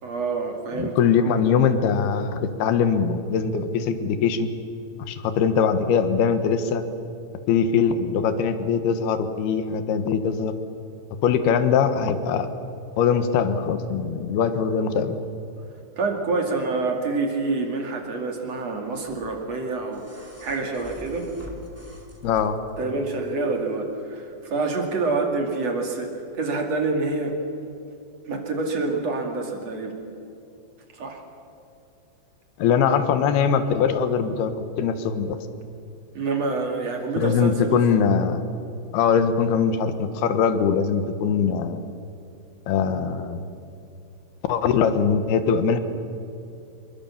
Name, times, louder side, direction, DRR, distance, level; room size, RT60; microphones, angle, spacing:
voice 1, 0.0-1.3 16.0-21.3 22.8-27.4 28.3-30.0 30.9-31.2 36.1-37.8, right 3 dB, 40° right, 2 dB, 3.0 m, -27 dB
voice 2, 0.8-4.5 5.0-6.8 7.5-10.5 11.2-12.5 13.0-15.2 22.2-22.6 32.6-34.5 34.8-35.4 37.2-38.4 38.9-41.8 42.7-43.4 44.5-45.8, left 6 dB, 70° left, 9 dB, 3.0 m, -22 dB
sound 1, 19.1-22.8 24.1-24.2, equal, 5° right, 1.8 m, -43 dB
26.5 x 23.0 x 7.3 m, 2.7 s
omnidirectional pair, 5.1 m